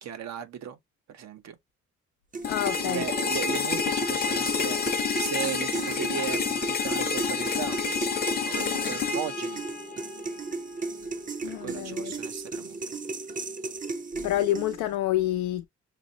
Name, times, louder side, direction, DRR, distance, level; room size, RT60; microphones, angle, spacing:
voice 1, 0.0-0.8 1.1-1.6 2.8-8.0 8.4-9.6 11.4-12.8, right 9 dB, 60° right, 0.8 m, -36 dB
sound 1, 2.3-15.0, right 3 dB, 25° right, 0.6 m, -35 dB
sound 2, 2.4-10.4, left 5 dB, 30° left, 0.6 m, -29 dB
voice 2, 2.5-3.0 11.4-12.2 14.2-15.7, left 13 dB, 90° left, 0.6 m, -28 dB
5.9 x 2.0 x 2.6 m
cardioid pair, 90°, 30 cm